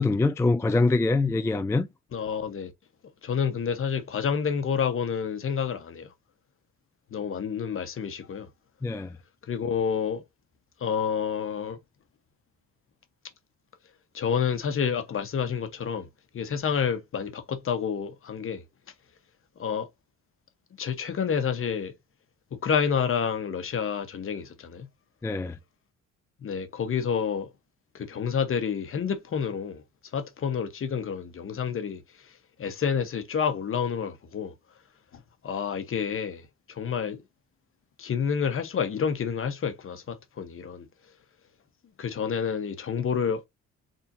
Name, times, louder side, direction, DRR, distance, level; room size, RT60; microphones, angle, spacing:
voice 1, 0.0-1.9 8.8-9.1 25.2-25.6, left 3 dB, 10° left, 0.3 m, -24 dB
voice 2, 2.1-2.7 3.2-6.1 7.1-8.5 9.4-10.2 10.8-11.8 14.1-16.1 16.3-18.6 19.6-19.9 20.8-21.9 22.6-24.9 26.4-27.5 27.9-29.8 30.1-34.5 35.1-37.2 38.0-40.9 42.0-43.4, left 7 dB, 45° left, 1.0 m, -29 dB
4.3 x 3.6 x 2.6 m
cardioid pair, 90°, 30 cm